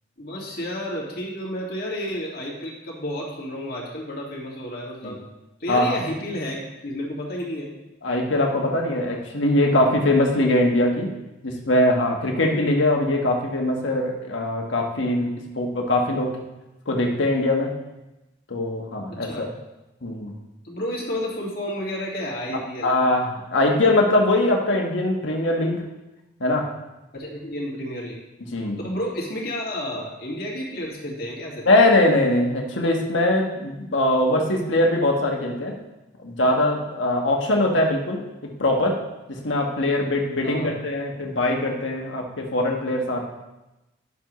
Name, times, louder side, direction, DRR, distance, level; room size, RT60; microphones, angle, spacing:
voice 1, 0.2-5.2 5.6-7.7 12.3-12.5 19.1-19.5 20.6-22.9 27.1-28.2 28.8-31.7 40.4-40.8, equal, 50° left, -3 dB, 2.1 m, -31 dB
voice 2, 5.7-6.0 8.0-11.1 11.4-16.4 16.9-17.7 18.5-19.5 20.0-20.3 22.8-25.8 26.4-26.7 28.5-28.8 31.6-35.8 36.2-39.0 39.3-43.3, left 1 dB, 85° left, 0 dB, 1.4 m, -22 dB
11.0 x 7.1 x 3.1 m, 0.99 s
head